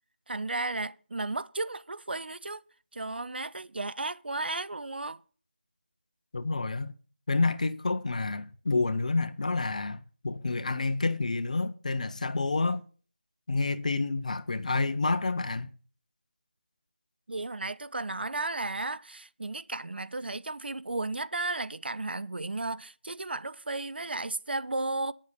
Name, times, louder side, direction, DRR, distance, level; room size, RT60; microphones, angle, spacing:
voice 1, 0.3-2.6 2.9-5.2 17.3-25.1, right 2 dB, 60° right, 0.6 m, -34 dB
voice 2, 6.3-6.9 7.3-10.0 10.2-12.8 13.5-15.7, left 3 dB, 40° left, 0.8 m, -29 dB
9.6 x 7.4 x 6.9 m
figure-of-eight pair, 170°, 6 cm